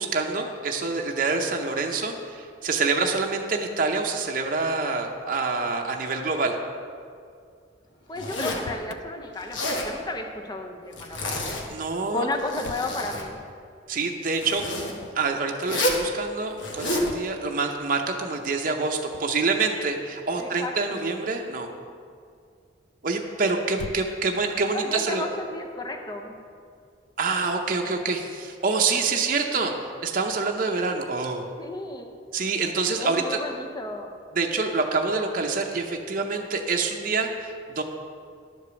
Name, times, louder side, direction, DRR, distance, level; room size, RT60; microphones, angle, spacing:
voice 1, 0.0-6.6 11.7-12.3 13.9-14.6 15.1-21.7 23.0-25.2 27.2-31.5 32.3-33.4 34.3-37.8, right 4 dB, 45° right, 2 dB, 0.7 m, -26 dB
voice 2, 8.1-11.4 12.1-13.4 20.4-21.0 24.7-26.4 31.6-32.1 33.0-34.1, left 2 dB, 20° left, 3 dB, 0.7 m, -33 dB
Zipper (clothing), 8.2-8.7 9.4-9.9 10.9-11.7 12.3-13.3 14.3-14.9 15.6-16.1 16.6-17.1, left 1 dB, 85° left, 1.3 m, -29 dB
Motor vehicle (road), 8.5-9.0 12.6-13.0 14.9-15.3 17.0-17.5 19.1-19.4 23.7-24.5, left 5 dB, 60° left, 0.3 m, -42 dB
10.5 x 5.0 x 6.9 m, 2.3 s
head